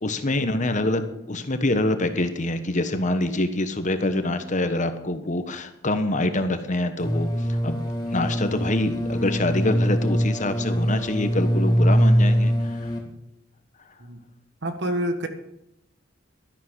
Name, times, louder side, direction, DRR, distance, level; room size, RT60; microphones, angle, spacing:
voice 1, 0.0-12.9, left 1 dB, 40° left, 8 dB, 1.3 m, -25 dB
sound 1, 7.0-13.0, equal, 20° left, 2.8 m, -22 dB
voice 2, 14.6-15.3, right 1 dB, 60° right, 8 dB, 1.6 m, -27 dB
12.5 x 11.0 x 6.4 m, 0.83 s
head